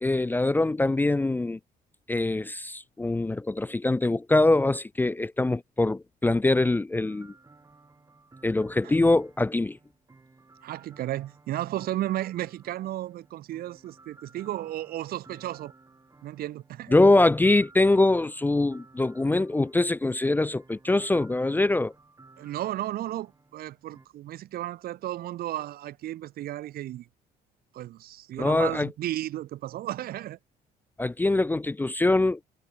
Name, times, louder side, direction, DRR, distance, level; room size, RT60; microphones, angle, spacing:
voice 1, 0.0-1.6 2.1-7.3 8.4-9.8 16.9-21.9 28.4-28.9 31.0-32.4, left 2 dB, 10° left, 0.5 m, -23 dB
sound 1, 6.9-24.1, right 3 dB, 20° right, 6.9 m, -56 dB
voice 2, 10.6-15.7 16.2-16.9 22.4-27.1 27.7-30.4, right 14 dB, 65° right, 0.8 m, -34 dB
cardioid pair, 110°, 17 cm